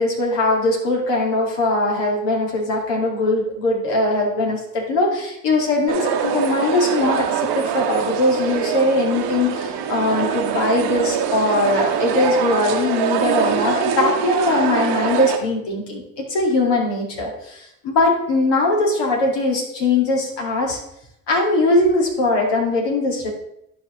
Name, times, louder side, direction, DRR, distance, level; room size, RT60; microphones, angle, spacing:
voice 1, 0.0-20.8 21.3-23.3, left 2 dB, 65° left, -1 dB, 2.3 m, -20 dB
sound 1, 5.9-15.4, right 7 dB, 65° right, 1.1 m, -23 dB
11.5 x 5.1 x 3.1 m, 0.79 s
hypercardioid pair, 50°, 45 cm